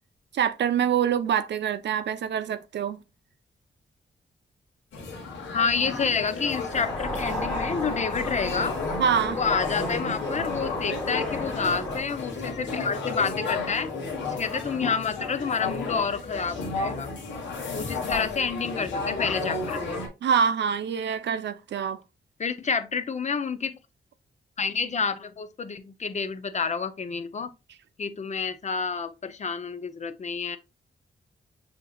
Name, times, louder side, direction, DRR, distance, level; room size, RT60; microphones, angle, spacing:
voice 1, 0.3-3.0 9.0-9.4 20.2-22.0, right 8 dB, 70° right, 0.5 m, -25 dB
sound 1, 4.9-20.1, left 3 dB, 85° left, 1.2 m, -33 dB
voice 2, 5.5-8.8 9.3-13.9 14.2-17.1 17.7-20.0 22.4-23.8 24.6-27.5 28.0-30.6, left 5 dB, 40° left, 0.5 m, -29 dB
sound 2, 6.7-12.0, left 1 dB, 15° left, 1.2 m, -33 dB
6.4 x 2.8 x 2.2 m
cardioid pair, 85°, 19 cm